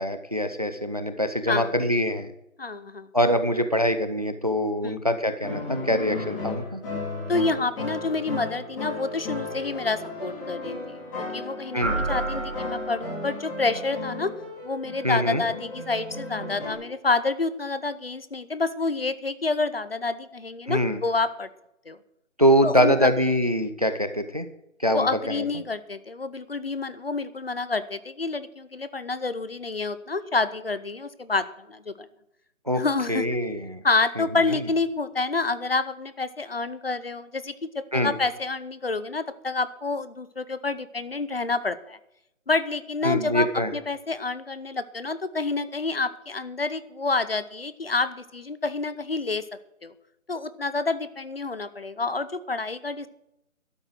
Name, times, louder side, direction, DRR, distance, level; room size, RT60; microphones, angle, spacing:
voice 1, 0.0-2.3 3.1-6.8 11.7-12.0 15.0-15.4 20.7-21.0 22.4-24.5 24.8-25.4 32.7-32.8 33.1-33.8 34.2-34.3 34.5-34.6 37.9-38.1 43.0-43.7, equal, 30° right, 10 dB, 0.6 m, -24 dB
voice 2, 2.6-3.1 4.8-5.0 7.3-14.3 14.6-21.5 21.9-22.0 22.6-23.1 24.9-32.1 32.7-33.2 33.8-42.0 42.5-49.4 49.8-49.9 50.3-53.1, left 3 dB, 45° left, 15 dB, 0.7 m, -28 dB
sound 1, 5.4-16.7, left 2 dB, 15° left, 4.5 m, -34 dB
sound 2, 11.8-13.4, right 3 dB, 10° right, 1.4 m, -31 dB
12.5 x 9.0 x 6.2 m, 0.83 s
figure-of-eight pair, 170°, 40 cm